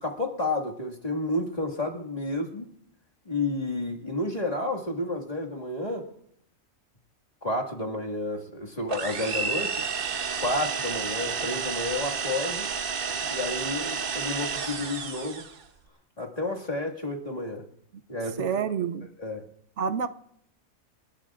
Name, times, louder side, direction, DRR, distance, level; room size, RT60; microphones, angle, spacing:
voice 1, 0.0-2.7 3.3-6.1 7.4-9.8 10.4-12.7 13.3-15.4 16.2-17.6 18.1-18.5 19.2-19.5, left 2 dB, 30° left, 0 dB, 2.1 m, -31 dB
sound 1, 8.9-15.6, right 5 dB, 45° right, 1.0 m, -31 dB
voice 2, 18.4-19.1 19.8-20.1, right 7 dB, 65° right, 11 dB, 1.0 m, -27 dB
29.0 x 13.0 x 2.5 m, 0.72 s
omnidirectional pair, 1.4 m